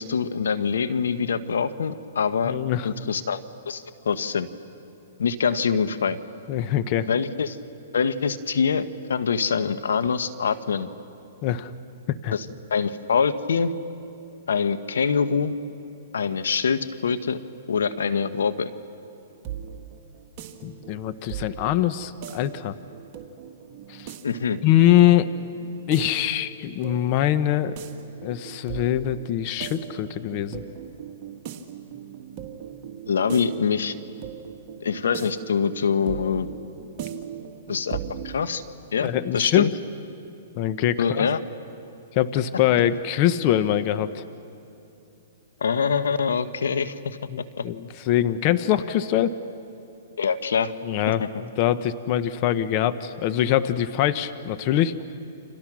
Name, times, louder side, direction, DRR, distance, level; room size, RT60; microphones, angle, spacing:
voice 1, 0.0-2.6 2.8-3.4 3.7-4.5 5.2-6.2 7.1-7.6 7.9-10.9 12.3-12.4 12.7-13.7 14.5-15.5 16.1-17.4 17.7-18.7 24.2-24.6 33.1-34.0 34.8-36.5 37.7-38.0 38.2-38.6 38.9-39.7 41.0-41.4 45.6-47.2 47.6-47.7 50.2-50.7 51.1-51.3, left 6 dB, 85° left, 12 dB, 1.2 m, -24 dB
voice 2, 2.5-2.9 6.5-7.1 11.4-11.7 12.1-12.3 20.6-22.8 23.9-24.1 24.6-25.3 25.9-27.8 28.2-30.6 39.0-39.7 40.6-41.3 42.1-44.2 47.3-49.3 50.8-54.9, left 12 dB, 40° left, 12 dB, 0.9 m, -23 dB
sound 1, 19.0-38.5, right 9 dB, 35° right, 2.3 m, -39 dB
29.5 x 27.0 x 6.2 m, 2.7 s
hypercardioid pair, 140°, 0 cm